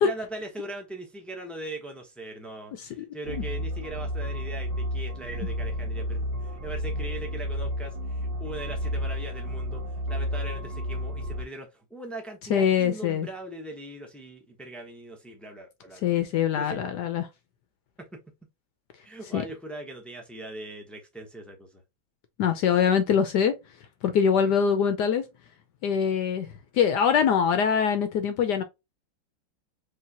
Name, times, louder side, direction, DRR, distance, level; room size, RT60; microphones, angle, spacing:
voice 1, 0.0-16.2 16.5-16.8 18.0-18.2 19.0-21.8 24.4-24.6, right 1 dB, ahead, 0.3 m, -40 dB
sound 1, 3.2-11.4, equal, 85° right, 2.0 m, -31 dB
voice 2, 12.5-13.3 16.0-17.2 19.3-19.4 22.4-23.5 24.0-25.2 25.8-26.5 26.7-28.6, left 7 dB, 70° left, 1.0 m, -23 dB
4.8 x 3.2 x 2.8 m
omnidirectional pair, 2.2 m